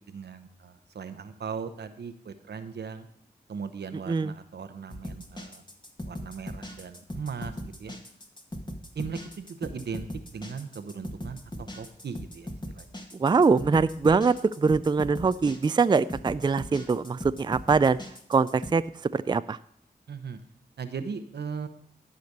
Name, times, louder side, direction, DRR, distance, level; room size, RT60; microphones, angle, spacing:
voice 1, 0.1-3.1 3.5-5.6 6.1-7.9 9.0-13.0 20.1-20.4 20.8-21.7, right 6 dB, 80° right, 9 dB, 0.9 m, -38 dB
sound 1, 4.9-18.7, equal, 25° left, 1.6 m, -39 dB
voice 2, 13.2-18.0 18.3-18.8 19.1-19.6, right 4 dB, 25° right, 14 dB, 0.4 m, -23 dB
12.0 x 5.1 x 6.6 m, 0.69 s
cardioid pair, 50°, 17 cm